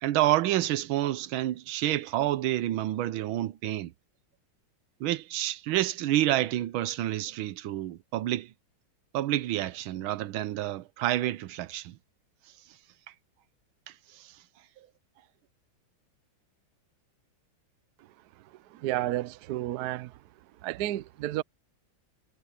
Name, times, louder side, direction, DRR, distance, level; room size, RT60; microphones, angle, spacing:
voice 1, 0.0-3.9 5.0-8.5 9.1-12.0 14.1-14.3, right 14 dB, 85° right, 1.5 m, -28 dB
voice 2, 18.7-20.1 20.6-21.4, right 15 dB, 70° right, 0.9 m, -31 dB
omnidirectional pair, 2.2 m